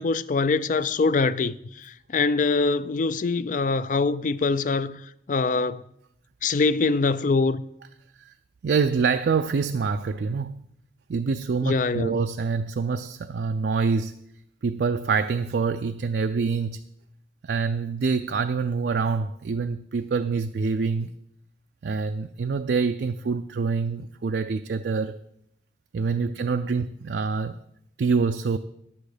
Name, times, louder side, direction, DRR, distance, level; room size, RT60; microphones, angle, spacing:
voice 1, 0.0-5.0 5.3-5.8 6.4-7.6 11.6-12.2, left 4 dB, 45° left, 0.4 m, -24 dB
voice 2, 8.6-10.5 11.1-14.2 14.6-16.8 17.4-21.1 21.8-25.2 25.9-27.6 28.0-28.6, right 5 dB, 65° right, 0.4 m, -26 dB
11.0 x 8.4 x 5.0 m
head